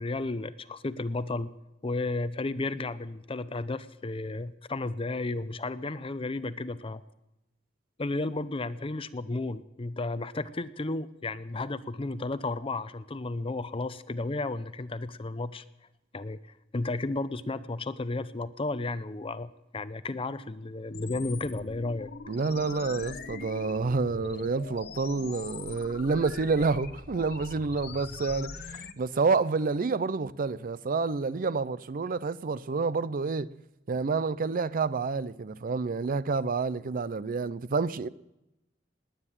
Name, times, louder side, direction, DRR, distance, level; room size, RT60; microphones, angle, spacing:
voice 1, 0.0-1.5 1.8-7.0 8.0-15.6 16.1-16.4 16.7-22.1, left 2 dB, 30° left, 0.6 m, -33 dB
sound 1, 20.9-28.9, left 4 dB, 55° left, 1.0 m, -42 dB
voice 2, 22.3-33.5 33.9-38.1, right 4 dB, 45° right, 0.5 m, -29 dB
19.5 x 9.8 x 7.3 m
head